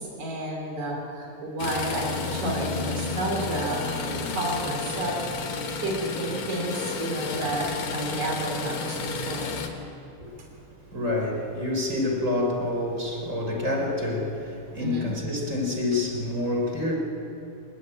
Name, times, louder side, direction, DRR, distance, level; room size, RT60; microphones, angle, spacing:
voice 1, 0.0-9.5 14.8-15.1, right 1 dB, 75° right, -1 dB, 4.9 m, -31 dB
sound 1, 1.6-9.7, left 4 dB, 70° left, 2.9 m, -31 dB
voice 2, 10.2-10.5 10.8-16.9, left 2 dB, 25° right, -1 dB, 4.0 m, -28 dB
27.0 x 12.0 x 8.8 m, 2.9 s
omnidirectional pair, 3.3 m